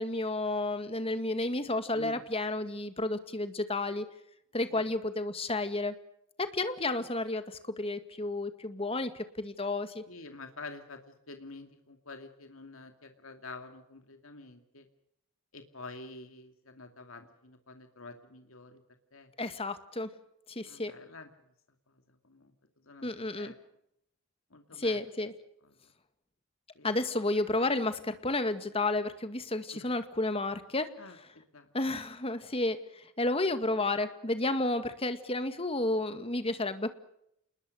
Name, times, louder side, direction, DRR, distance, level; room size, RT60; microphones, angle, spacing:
voice 1, 0.0-4.0 4.5-5.9 6.4-10.0 19.4-20.1 20.5-20.9 23.0-23.5 24.8-25.3 26.8-30.9 31.7-36.9, left 2 dB, 25° left, 10 dB, 2.0 m, -31 dB
voice 2, 10.1-14.9 15.5-18.8 19.1-19.3 20.6-21.3 22.2-22.5 22.8-23.1 23.4-23.5 24.5-25.0 26.7-26.9 29.7-29.9 31.0-31.7, left 3 dB, 75° left, 6 dB, 2.5 m, -48 dB
28.5 x 21.0 x 6.5 m, 0.76 s
head